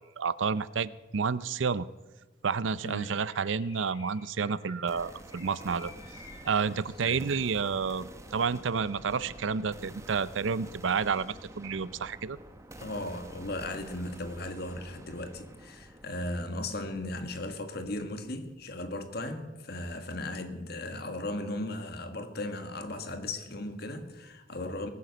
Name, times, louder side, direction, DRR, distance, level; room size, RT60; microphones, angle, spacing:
voice 1, 0.2-1.9 2.4-5.9 6.4-12.4, right 5 dB, 80° right, 18 dB, 0.5 m, -30 dB
voice 2, 2.8-3.2 7.0-7.3 12.8-24.9, left 1 dB, 55° left, 7 dB, 1.7 m, -37 dB
Bird, 2.8-7.7, left 3 dB, 25° left, 2.9 m, -54 dB
sound 1, 4.9-18.8, right 1 dB, 15° right, 1.0 m, -49 dB
19.5 x 9.4 x 6.8 m, 1.2 s
head